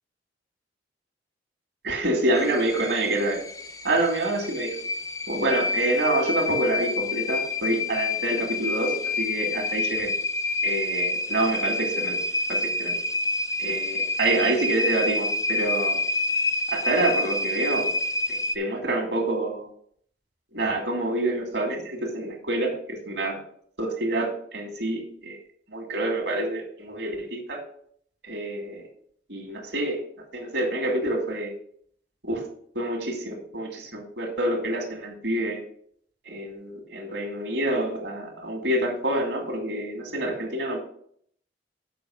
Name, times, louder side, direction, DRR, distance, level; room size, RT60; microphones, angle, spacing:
voice 1, 1.8-3.4 3.8-4.8 5.3-10.1 10.6-12.2 12.5-13.0 13.6-16.0 16.7-17.9 18.3-19.7 20.5-23.4 23.8-25.4 25.7-27.6 28.2-28.8 29.3-30.0 30.3-31.5 32.2-32.5 32.7-35.6 36.3-40.8, right 2 dB, 70° right, 3 dB, 2.2 m, -27 dB
sound 1, 2.3-18.6, left 2 dB, 15° left, 0.4 m, -28 dB
7.1 x 5.2 x 6.4 m, 0.62 s
head